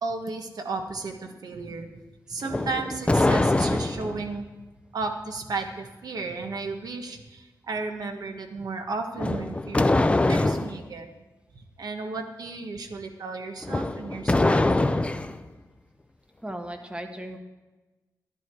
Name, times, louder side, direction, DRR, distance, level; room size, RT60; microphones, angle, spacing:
voice 1, 0.0-1.9 2.3-4.5 4.9-9.9 10.3-11.1 11.8-15.1, right 3 dB, 65° right, 4 dB, 1.5 m, -34 dB
sound 1, 2.4-4.2 9.2-10.8 13.6-15.4, left 2 dB, 15° left, 0.6 m, -23 dB
voice 2, 16.4-17.4, right 1 dB, 15° right, 5 dB, 1.3 m, -36 dB
12.5 x 11.0 x 4.7 m, 1.2 s
wide cardioid pair, 105°, 7 cm